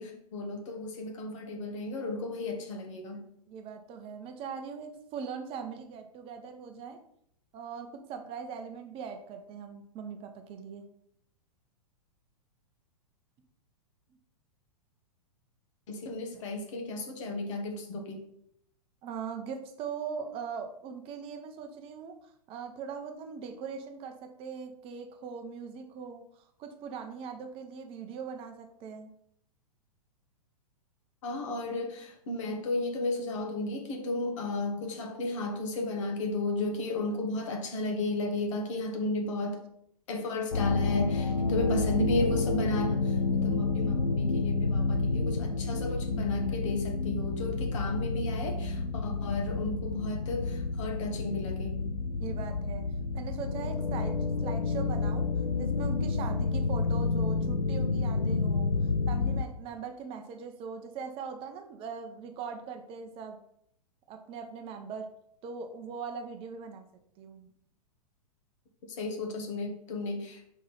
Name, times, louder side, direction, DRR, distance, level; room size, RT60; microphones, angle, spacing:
voice 1, 0.0-3.3 15.9-18.2 31.2-39.6 40.1-51.7 69.0-70.4, left 2 dB, 50° left, 3 dB, 1.4 m, -34 dB
voice 2, 3.5-7.0 7.5-10.9 19.0-29.1 52.2-52.9 53.1-55.3 55.6-58.7 59.1-63.4 64.1-65.1 65.4-66.8 67.2-67.5, right 6 dB, 30° right, 6 dB, 0.7 m, -40 dB
sound 1, 40.5-59.4, left 3 dB, 80° left, 0.5 m, -29 dB
5.1 x 3.9 x 5.5 m, 0.71 s
figure-of-eight pair, 105°, 20 cm